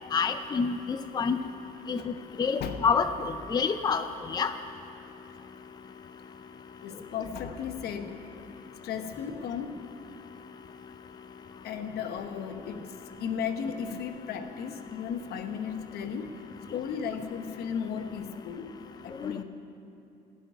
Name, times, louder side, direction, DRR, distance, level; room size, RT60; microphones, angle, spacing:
voice 1, 0.1-1.4 1.9-4.5 19.2-19.4, left 5 dB, 25° left, 8 dB, 0.5 m, -28 dB
voice 2, 6.8-8.2 8.8-9.8 11.5-12.8 13.2-16.4 16.7-19.4, left 7 dB, 70° left, 7 dB, 1.1 m, -35 dB
16.5 x 5.9 x 9.5 m, 2.7 s
cardioid pair, 110°, 17 cm